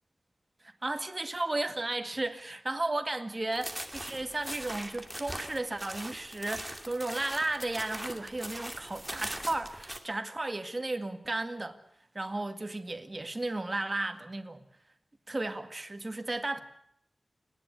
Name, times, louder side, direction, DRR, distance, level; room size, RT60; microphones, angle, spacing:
voice 1, 0.8-11.8 12.1-14.6 15.3-16.6, right 2 dB, 35° right, 2.0 m, -34 dB
sound 1, 3.5-10.0, equal, 5° right, 2.5 m, -41 dB
29.0 x 11.0 x 9.7 m
wide cardioid pair, 70°, 0 cm